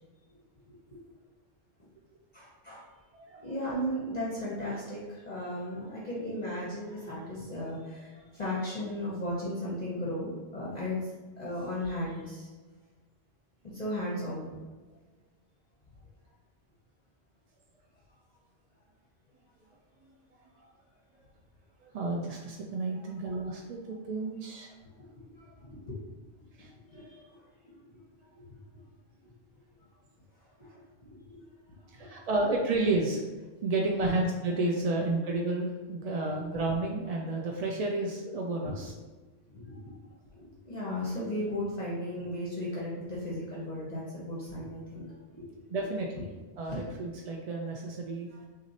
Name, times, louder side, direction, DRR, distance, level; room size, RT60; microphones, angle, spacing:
voice 1, 0.7-1.0 1.8-1.9 2.3-2.9 3.4-12.5 13.6-14.5 20.5-20.7 22.9-23.1 25.0-25.1 25.3-26.0 26.4-26.5 26.9-28.0 28.3-28.5 30.4-32.3 34.0-34.1 38.6-38.7 39.5-39.9 40.6-45.0 45.3-45.4 46.7-46.8, left 1 dB, 40° left, -6 dB, 0.9 m, -36 dB
voice 2, 3.1-3.5 21.8-24.7 26.6-26.7 31.9-33.2 33.6-38.9 45.7-46.3 46.6-48.4, right 2 dB, 55° right, 0 dB, 0.4 m, -31 dB
5.8 x 2.5 x 2.8 m, 1.3 s
omnidirectional pair, 1.1 m